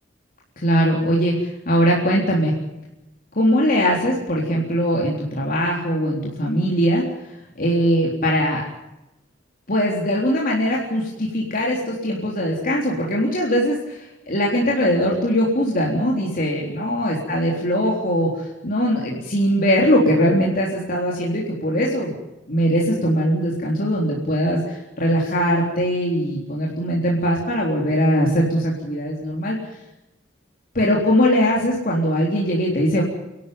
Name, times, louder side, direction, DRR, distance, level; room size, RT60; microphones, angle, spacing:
voice 1, 0.6-2.5 3.4-7.0 7.6-8.7 9.7-22.1 22.5-29.6 30.7-33.0, equal, 50° left, -3 dB, 3.8 m, -21 dB
29.0 x 12.5 x 9.4 m, 0.97 s
head